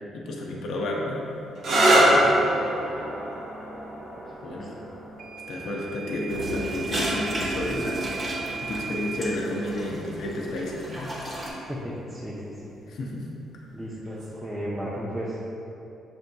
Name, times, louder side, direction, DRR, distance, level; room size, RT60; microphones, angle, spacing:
voice 1, 0.2-1.3 1.9-2.9 4.4-4.7 5.5-8.0 8.6-11.1 12.9-13.3, left 1 dB, 70° left, -2 dB, 0.5 m, -31 dB
sound 1, 1.5-9.0 10.0-10.5 14.0-14.4, right 1 dB, 70° right, 0.8 m, -26 dB
voice 2, 4.2-4.9 11.7-12.7 13.7-15.4, equal, 10° right, -8 dB, 0.5 m, -35 dB
Microwave oven / Alarm, 5.2-9.3, right 6 dB, 90° right, 0.4 m, -37 dB
sound 2, 6.3-11.5, right 1 dB, 30° right, 1.0 m, -33 dB
6.1 x 2.7 x 2.2 m, 2.9 s
cardioid pair, 90°, 0 cm